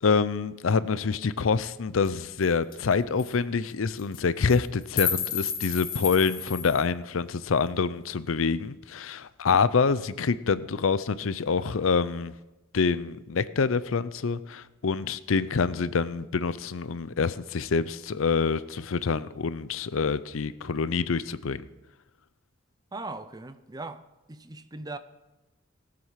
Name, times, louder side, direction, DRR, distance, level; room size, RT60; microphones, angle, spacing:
voice 1, 0.0-12.3 12.7-21.7, left 5 dB, 80° left, 0.5 m, -26 dB
sound 1, 2.0-2.1 2.4-2.5 2.7-2.9 3.2-3.3 4.0-4.2 4.5-6.8, left 7 dB, 45° left, 2.3 m, -31 dB
voice 2, 22.9-24.0 24.3-25.0, right 3 dB, 20° right, 0.6 m, -39 dB
18.5 x 7.8 x 5.7 m
head